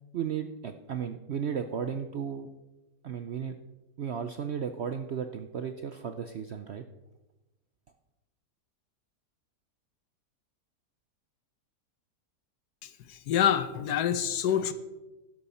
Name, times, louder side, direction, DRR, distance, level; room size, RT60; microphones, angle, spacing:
voice 1, 0.1-2.5 3.0-3.6 4.0-6.8, right 7 dB, 65° right, 8 dB, 0.6 m, -34 dB
voice 2, 12.8-14.7, left 9 dB, 75° left, 12 dB, 1.4 m, -27 dB
12.5 x 11.0 x 4.3 m, 1.1 s
omnidirectional pair, 1.8 m